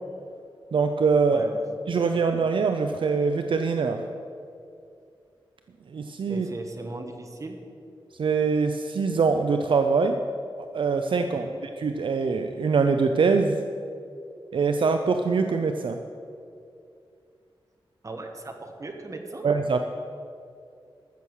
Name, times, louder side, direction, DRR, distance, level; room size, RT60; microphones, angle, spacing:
voice 1, 0.7-1.4 1.9-4.0 5.9-6.5 8.2-10.2 10.6-11.5 11.8-13.6 14.5-16.0 19.4-19.8, right 5 dB, 65° right, 6 dB, 0.5 m, -23 dB
voice 2, 1.3-1.6 6.3-7.6 11.3-11.6 18.0-19.5, right 2 dB, 35° right, 4 dB, 1.3 m, -37 dB
14.0 x 7.0 x 6.4 m, 2.5 s
wide cardioid pair, 130°, 9 cm